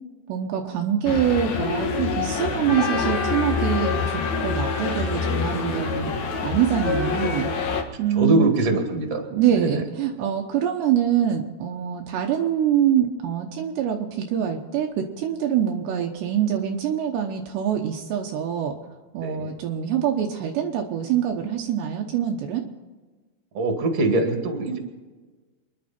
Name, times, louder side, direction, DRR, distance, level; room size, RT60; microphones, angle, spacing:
voice 1, 0.3-6.1 6.4-7.5 8.0-8.5 9.3-18.7 19.1-22.6, right 9 dB, 75° right, 2 dB, 3.0 m, -24 dB
sound 1, 1.0-7.8, left 5 dB, 60° left, 1.9 m, -26 dB
Trumpet, 2.7-6.8, left 5 dB, 45° left, 2.3 m, -34 dB
voice 2, 7.9-9.2 9.5-9.9 19.2-19.6 23.5-24.8, right 2 dB, 40° right, 3 dB, 2.6 m, -23 dB
27.0 x 11.0 x 4.4 m, 1.3 s
omnidirectional pair, 5.3 m